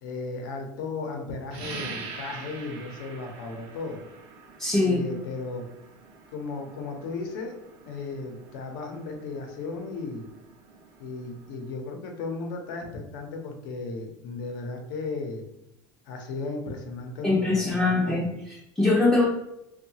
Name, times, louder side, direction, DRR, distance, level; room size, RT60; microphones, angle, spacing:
voice 1, 0.0-4.0 4.8-5.7 6.3-7.6 7.8-10.3 11.0-15.4 16.0-18.3, left 3 dB, 90° left, 3 dB, 0.7 m, -35 dB
sound 1, 1.5-11.8, right 4 dB, 55° right, 0.6 m, -45 dB
voice 2, 4.6-5.0 17.2-19.2, left 2 dB, 5° left, -4 dB, 0.4 m, -23 dB
2.6 x 2.2 x 2.8 m, 0.84 s
supercardioid pair, 130°, 10 cm